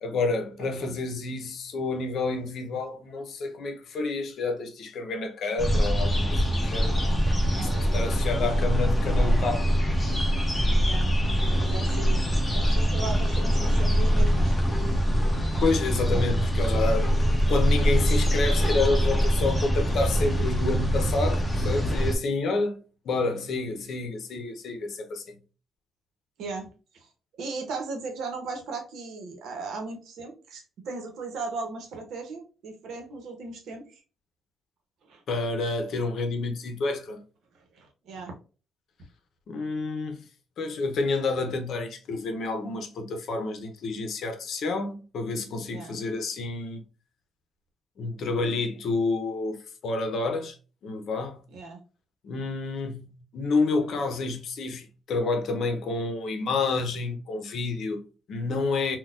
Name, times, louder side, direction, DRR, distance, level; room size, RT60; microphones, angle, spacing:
voice 1, 0.0-6.9 7.6-9.7 15.6-17.1 17.5-22.8 23.0-25.4 35.3-37.2 39.5-40.3 40.6-46.8 48.0-50.6 50.8-51.5 52.2-59.0, left 3 dB, 65° left, 0.7 m, -29 dB
voice 2, 0.6-1.0 7.5-8.6 10.8-11.1 11.5-12.2 12.5-14.6 16.1-16.3 26.4-26.7 26.9-27.1 27.4-34.0 35.0-35.2 37.5-38.3 45.7-46.0 51.5-51.8, right 4 dB, 80° right, 0.9 m, -37 dB
sound 1, 5.6-22.1, equal, 15° left, 0.8 m, -23 dB
3.9 x 2.2 x 2.4 m
cardioid pair, 90°, 0 cm